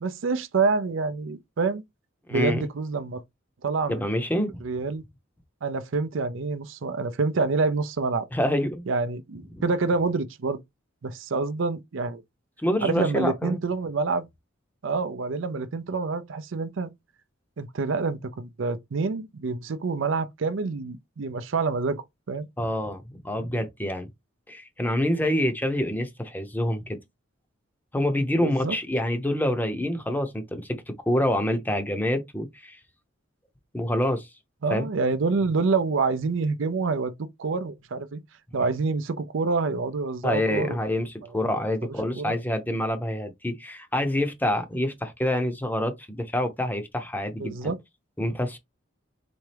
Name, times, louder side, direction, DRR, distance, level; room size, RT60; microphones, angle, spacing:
voice 1, 0.0-1.8 2.3-3.2 3.6-4.0 4.6-5.0 5.6-8.3 8.9-10.6 11.0-12.2 12.8-14.3 14.8-16.9 17.6-22.0 22.3-22.5 28.4-28.8 34.6-38.2 38.5-40.8 41.2-41.3 42.1-42.4 47.4-47.8, right 4 dB, 70° right, 0.5 m, -27 dB
voice 2, 2.3-2.6 3.9-4.6 8.3-8.8 12.6-13.6 22.6-24.1 24.5-27.0 27.9-32.8 33.7-34.3 34.7-34.9 40.2-47.7 48.2-48.6, left 1 dB, 10° left, 0.7 m, -27 dB
4.2 x 3.4 x 3.3 m
head